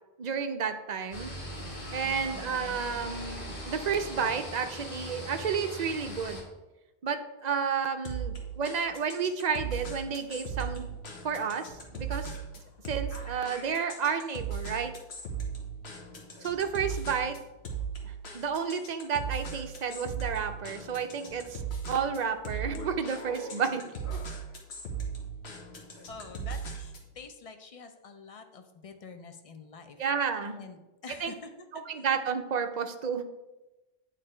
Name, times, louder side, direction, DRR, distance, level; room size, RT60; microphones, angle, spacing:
voice 1, 0.2-1.3 1.9-6.4 7.0-10.9 11.2-11.6 11.9-12.3 12.9-14.9 16.4-17.4 18.0-21.6 21.9-23.8 30.0-30.6 31.2-31.3 31.9-33.2, right 6 dB, 50° right, 7 dB, 0.6 m, -31 dB
sound 1, 1.1-6.4, equal, 60° left, 1.6 m, -40 dB
voice 2, 2.0-2.5 26.1-30.0 30.6-31.8, left 4 dB, 40° left, 7 dB, 0.6 m, -47 dB
sound 2, 8.0-27.1, right 5 dB, 90° left, 1.3 m, -38 dB
8.6 x 3.3 x 4.3 m, 1.0 s
omnidirectional pair, 1.1 m